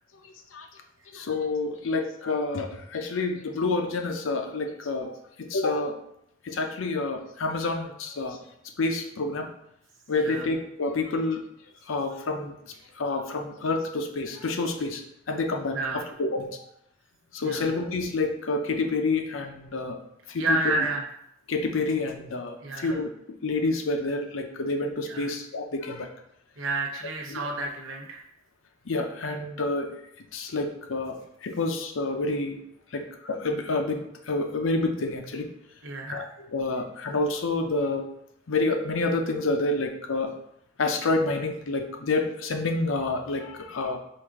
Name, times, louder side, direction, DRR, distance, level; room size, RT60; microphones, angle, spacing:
voice 1, 1.1-5.1 5.4-5.9 6.4-8.4 8.8-9.5 10.1-11.4 11.9-12.5 13.0-15.0 15.3-16.5 17.3-20.0 20.3-20.4 21.5-23.1 23.4-26.1 27.3-27.4 28.9-29.9 30.3-32.6 32.9-35.5 36.1-38.1 38.5-40.3 40.8-44.0, left 3 dB, 90° left, 4 dB, 0.6 m, -28 dB
voice 2, 15.7-16.1 17.4-17.7 20.4-21.1 22.6-23.0 25.1-25.3 26.6-28.2 35.8-36.3, right 2 dB, 85° right, 1 dB, 0.8 m, -30 dB
4.8 x 2.5 x 3.5 m, 0.75 s
head